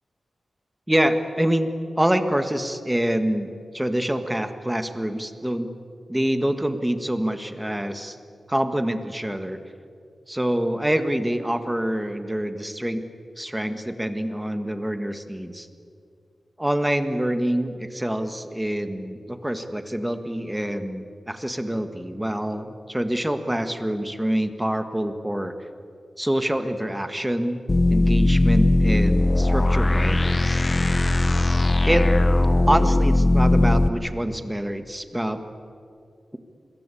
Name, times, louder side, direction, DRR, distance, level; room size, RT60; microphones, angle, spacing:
voice 1, 0.9-1.7 2.0-5.7 6.1-8.2 8.5-9.6 10.3-13.0 13.4-15.7 16.6-25.5 26.2-27.6 27.9-30.6 31.9-32.1 32.7-35.4, right 1 dB, 10° right, 8 dB, 1.7 m, -26 dB
sound 1, 27.7-33.9, left 2 dB, 30° left, 1.0 m, -19 dB
26.5 x 21.5 x 8.5 m, 2.4 s
wide cardioid pair, 100°, 0 cm